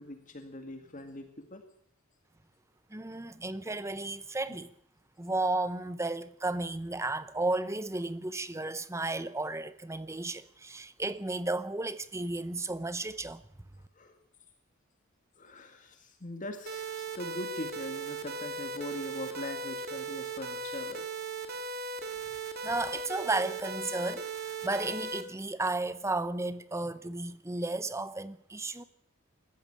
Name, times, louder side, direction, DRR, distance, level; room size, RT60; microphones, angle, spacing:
voice 1, 0.0-1.6 4.5-4.6 14.0-14.2 15.4-21.0, left 1 dB, 40° left, 2.0 m, -41 dB
voice 2, 2.9-4.7 5.2-13.4 22.6-28.8, right 2 dB, 15° right, 0.8 m, -33 dB
sound 1, 16.7-25.2, right 3 dB, 50° right, 2.5 m, -38 dB
20.5 x 14.5 x 8.9 m
head